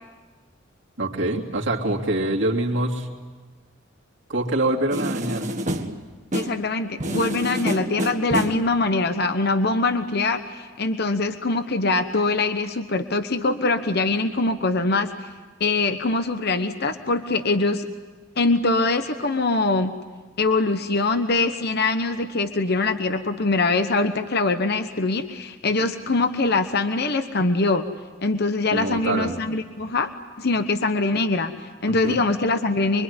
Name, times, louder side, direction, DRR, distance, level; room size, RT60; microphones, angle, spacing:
voice 1, 1.0-3.1 4.3-5.5 28.7-29.4 32.0-32.2, right 1 dB, 65° right, -1 dB, 2.9 m, -25 dB
sound 1, 4.9-6.6 7.0-8.7, equal, 35° right, 1.6 m, -28 dB
voice 2, 6.3-15.3 15.6-17.9 18.4-19.9 20.4-27.8 28.2-30.1 30.4-33.0, left 3 dB, 50° left, 8 dB, 1.1 m, -23 dB
25.0 x 24.5 x 9.7 m, 1.3 s
head